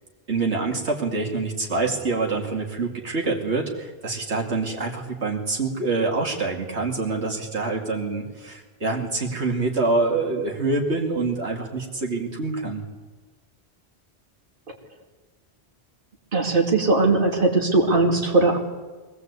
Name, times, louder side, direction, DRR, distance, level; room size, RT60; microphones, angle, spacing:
voice 1, 0.3-12.8, right 3 dB, 85° right, 0 dB, 2.9 m, -26 dB
voice 2, 16.3-18.6, right 3 dB, 55° right, 0 dB, 2.9 m, -19 dB
23.5 x 19.0 x 8.3 m, 1.3 s
omnidirectional pair, 1.1 m